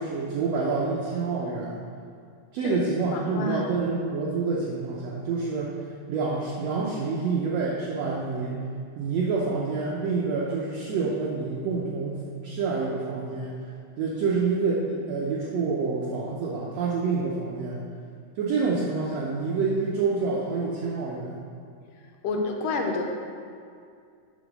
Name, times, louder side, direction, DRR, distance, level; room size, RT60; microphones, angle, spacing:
voice 1, 0.0-1.8 2.5-5.8 6.1-8.5 9.0-13.6 14.0-17.8 18.4-21.4, right 4 dB, 85° right, -3 dB, 1.4 m, -27 dB
voice 2, 3.1-3.8 22.2-23.0, left 3 dB, 80° left, 3 dB, 2.2 m, -29 dB
7.3 x 3.9 x 5.9 m, 2.3 s
omnidirectional pair, 3.7 m